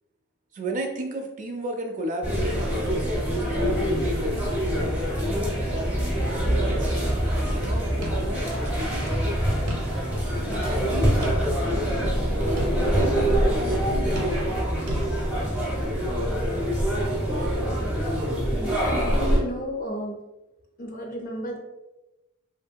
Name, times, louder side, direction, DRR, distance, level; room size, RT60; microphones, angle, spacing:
voice 1, 0.5-4.5 4.9-5.9 6.3-6.9 7.3-9.4 10.4-14.4, equal, 35° right, 4 dB, 0.4 m, -34 dB
sound 1, 2.2-19.4, equal, 5° right, 0.7 m, -25 dB
sound 2, 8.0-8.3 8.7-8.8 9.7-10.1 10.5-10.6 11.2-11.8 12.6-12.8 14.2-14.6 14.9-15.0, equal, 85° right, 0.7 m, -36 dB
voice 2, 18.5-20.2 20.8-21.6, equal, 40° left, 1 dB, 0.4 m, -32 dB
2.8 x 2.6 x 2.2 m, 1.0 s
head